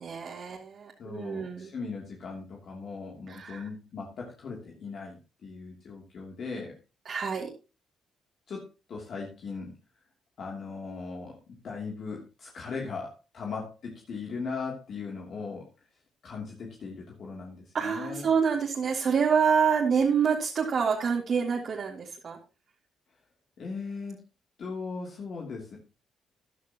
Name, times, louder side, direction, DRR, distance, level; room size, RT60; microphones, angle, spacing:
voice 1, 0.0-1.7 3.3-3.6 7.1-7.5 17.7-22.4, right 6 dB, 55° right, -2 dB, 2.4 m, -27 dB
voice 2, 1.0-6.8 8.5-9.7 10.4-15.7 16.2-18.3 23.6-24.2 24.6-25.8, left 4 dB, 60° left, -1 dB, 2.9 m, -38 dB
14.0 x 11.0 x 3.0 m, 0.30 s
cardioid pair, 90°, 0 cm